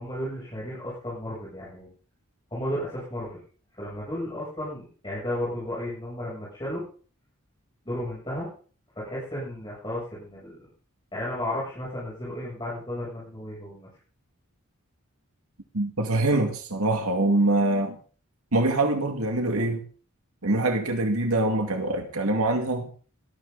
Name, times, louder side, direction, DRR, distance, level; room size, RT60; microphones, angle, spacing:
voice 1, 0.0-1.9 2.5-3.4 3.8-6.8 7.8-8.5 9.0-10.6 11.1-13.9, left 1 dB, 20° left, -7 dB, 7.9 m, -33 dB
voice 2, 15.7-18.0 18.5-19.8 20.4-22.9, right 2 dB, 90° right, 3 dB, 2.3 m, -24 dB
18.5 x 13.5 x 4.1 m, 0.41 s
head